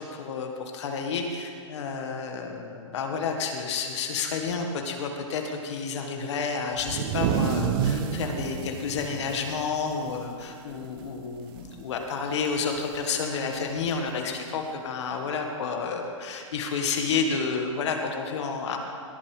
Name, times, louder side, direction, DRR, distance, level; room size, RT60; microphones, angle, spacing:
voice 1, 0.0-18.8, left 5 dB, 60° left, 3 dB, 1.7 m, -30 dB
sound 1, 6.8-10.5 10.8-11.0 11.4-11.8 12.9-13.0 14.1-14.2, right 7 dB, 45° right, 1.0 m, -29 dB
18.0 x 7.6 x 4.9 m, 2.3 s
hypercardioid pair, 135°, 16 cm